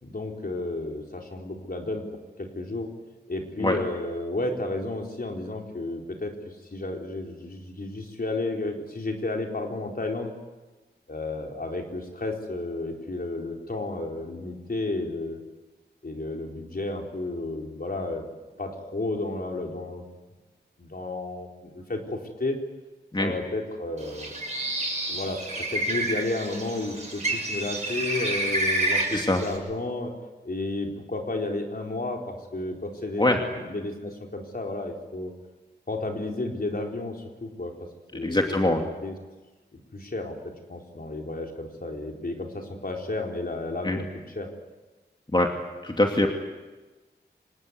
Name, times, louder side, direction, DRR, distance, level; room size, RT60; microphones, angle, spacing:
voice 1, 0.0-2.0 2.4-2.9 3.3-10.3 11.1-15.4 16.0-18.2 18.6-20.0 20.8-22.6 23.2-24.3 25.1-30.1 30.4-35.3 35.9-37.7 38.1-38.4 38.6-38.7 39.0-39.1 39.7-44.1 44.3-44.5, left 2 dB, 55° left, 1 dB, 4.2 m, -32 dB
Bird, 24.0-29.6, right 1 dB, 40° right, 6.4 m, -29 dB
voice 2, 38.2-38.9 43.8-44.0 45.3-45.5 45.8-46.3, left 1 dB, 25° left, 2 dB, 2.6 m, -23 dB
25.5 x 19.5 x 9.6 m, 1.2 s
wide cardioid pair, 75°, 18 cm